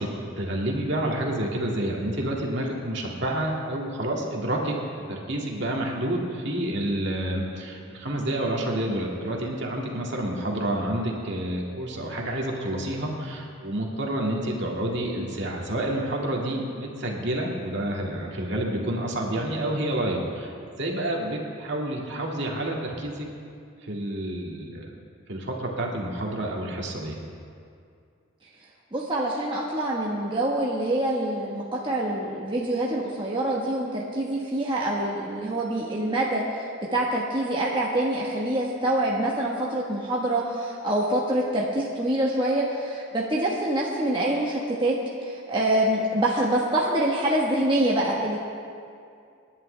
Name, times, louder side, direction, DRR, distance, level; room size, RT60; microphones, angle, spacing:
voice 1, 0.0-4.8 5.1-20.5 20.8-23.3 23.8-24.9 25.3-27.2, right 1 dB, 55° right, -1 dB, 2.1 m, -29 dB
voice 2, 28.9-36.4 36.9-45.0 45.2-48.4, right 1 dB, 25° right, -4 dB, 1.2 m, -25 dB
27.0 x 11.0 x 3.3 m, 2.4 s
head